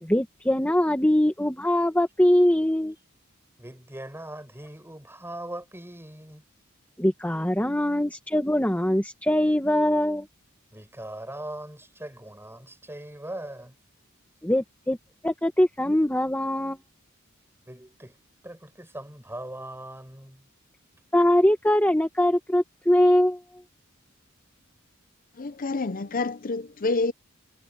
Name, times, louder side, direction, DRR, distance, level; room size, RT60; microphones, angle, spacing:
voice 1, 0.0-2.9 7.0-10.3 14.4-15.0 15.2-16.8 21.1-23.4, left 1 dB, 10° left, 1.5 m, -22 dB
voice 2, 3.6-6.4 8.0-8.2 10.7-13.8 17.7-18.2 18.4-20.5, right 1 dB, 10° right, 6.8 m, -40 dB
voice 3, 25.4-27.1, left 3 dB, 40° left, 0.7 m, -28 dB
head